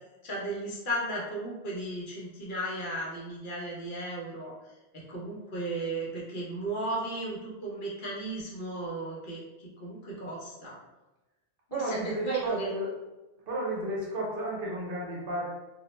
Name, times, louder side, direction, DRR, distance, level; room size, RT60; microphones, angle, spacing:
voice 1, 0.2-4.5 4.9-10.8 11.7-12.7, right 2 dB, 60° left, -4 dB, 0.7 m, -35 dB
voice 2, 11.7-13.0 13.5-15.4, right 1 dB, 65° right, -4 dB, 0.8 m, -33 dB
2.3 x 2.0 x 2.9 m, 1.1 s
omnidirectional pair, 1.1 m